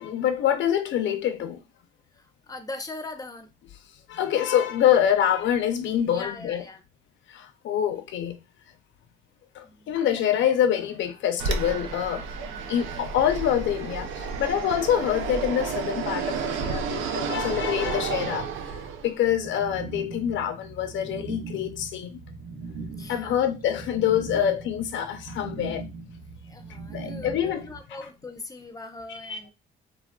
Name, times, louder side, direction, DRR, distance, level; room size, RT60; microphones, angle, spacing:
voice 1, 0.0-1.6 4.1-6.6 7.3-8.4 9.5-12.3 12.7-22.2 23.1-25.8 26.9-27.7 28.0-28.1 29.1-29.4, left 10 dB, 70° left, 0.5 m, -26 dB
voice 2, 2.1-3.5 6.1-6.8 9.6-9.9 22.9-23.5 24.3-24.5 26.4-29.5, left 3 dB, 20° left, 0.6 m, -40 dB
Fixed-wing aircraft airplane, 11.4-19.2, right 5 dB, 85° right, 0.5 m, -31 dB
sound 1, 19.2-27.8, right 3 dB, 60° right, 0.9 m, -40 dB
3.2 x 2.4 x 2.2 m
cardioid pair, 90°, 20 cm